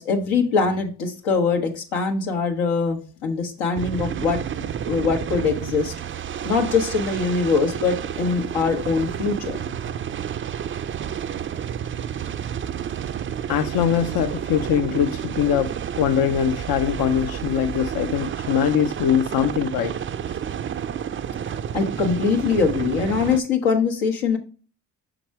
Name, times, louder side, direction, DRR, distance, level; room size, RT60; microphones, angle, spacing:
voice 1, 0.0-4.4 4.8-5.9 6.4-9.7 21.7-24.4, left 5 dB, 75° left, 1.2 m, -22 dB
sound 1, 3.8-23.4, right 9 dB, 30° right, 0.4 m, -30 dB
voice 2, 13.5-20.0, left 9 dB, 50° left, 0.6 m, -22 dB
5.9 x 3.9 x 4.6 m
hypercardioid pair, 45°, 45 cm